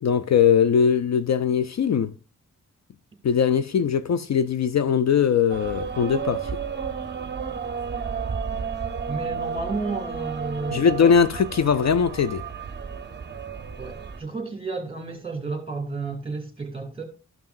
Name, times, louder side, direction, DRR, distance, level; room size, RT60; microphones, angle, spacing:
voice 1, 0.0-2.1 3.2-6.5 10.7-12.4, left 7 dB, 55° left, 0.4 m, -20 dB
sound 1, 5.5-14.2, right 6 dB, 35° right, 0.7 m, -32 dB
voice 2, 9.1-10.8 13.8-17.0, right 3 dB, 15° right, 2.5 m, -32 dB
13.0 x 5.8 x 2.5 m
wide cardioid pair, 90°, 32 cm